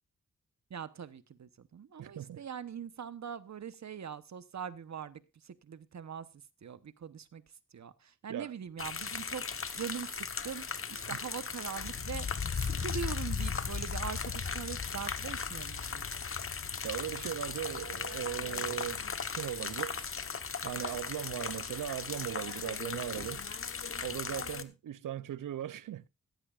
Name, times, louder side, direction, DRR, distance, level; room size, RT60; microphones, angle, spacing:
voice 1, 0.7-6.3 6.6-7.4 7.7-16.1, right 7 dB, 60° right, 1.0 m, -42 dB
voice 2, 2.0-2.4 8.3-8.5 16.8-19.0 19.4-20.1 20.6-23.4 24.0-26.1, right 11 dB, 85° right, 0.6 m, -38 dB
sound 1, 8.8-24.6, left 5 dB, 45° left, 1.1 m, -37 dB
15.0 x 14.5 x 2.4 m
wide cardioid pair, 90°, 31 cm